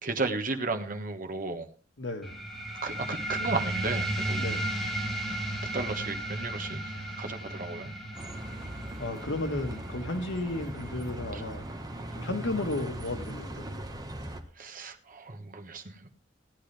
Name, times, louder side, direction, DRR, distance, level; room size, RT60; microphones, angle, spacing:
voice 1, 0.0-1.7 2.8-4.5 5.7-7.9 11.3-11.4 14.6-16.1, right 3 dB, 45° right, 1.3 m, -34 dB
voice 2, 2.0-2.5 4.4-4.8 9.0-11.7 12.1-13.8, left 2 dB, 75° left, 1.6 m, -34 dB
sound 1, 2.2-13.3, right 1 dB, ahead, 2.0 m, -35 dB
Bus, 8.1-14.4, right 1 dB, 20° right, 1.2 m, -39 dB
16.5 x 9.8 x 3.4 m
head